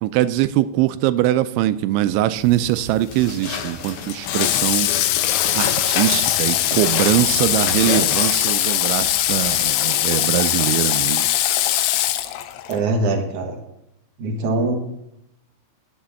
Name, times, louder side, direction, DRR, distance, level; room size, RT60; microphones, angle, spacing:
voice 1, 0.0-4.9 5.5-11.3, right 14 dB, 85° right, 13 dB, 2.8 m, -22 dB
sound 1, 2.4-9.7, left 7 dB, 70° left, 2.4 m, -29 dB
Water / Water tap faucet, 4.3-12.8, left 13 dB, 85° left, 3.2 m, -21 dB
voice 2, 12.7-13.5 14.2-14.7, right 2 dB, 65° right, 2 dB, 1.9 m, -22 dB
10.5 x 7.5 x 7.1 m, 0.83 s
omnidirectional pair, 5.4 m